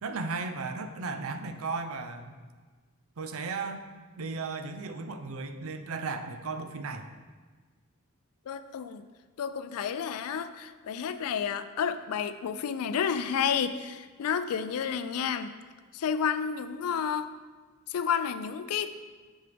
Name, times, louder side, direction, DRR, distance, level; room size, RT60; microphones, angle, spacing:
voice 1, 0.0-2.4 3.2-3.8 4.2-7.1, right 4 dB, 65° right, 8 dB, 0.5 m, -35 dB
voice 2, 8.5-9.1 9.4-15.5 15.9-17.3 17.9-18.9, left 7 dB, 80° left, 11 dB, 0.4 m, -31 dB
6.8 x 6.4 x 3.3 m, 1.4 s
head